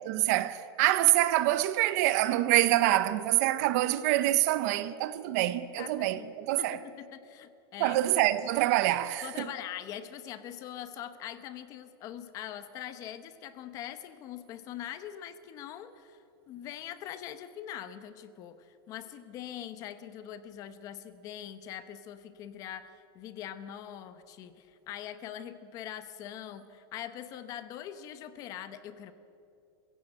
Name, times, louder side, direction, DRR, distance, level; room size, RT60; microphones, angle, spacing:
voice 1, 0.0-6.8 7.8-9.5, right 15 dB, 40° right, 0.7 m, -26 dB
voice 2, 5.8-6.3 6.6-8.0 9.2-29.1, left 10 dB, 25° left, 0.8 m, -43 dB
22.5 x 15.5 x 8.7 m
supercardioid pair, 175°, 13 cm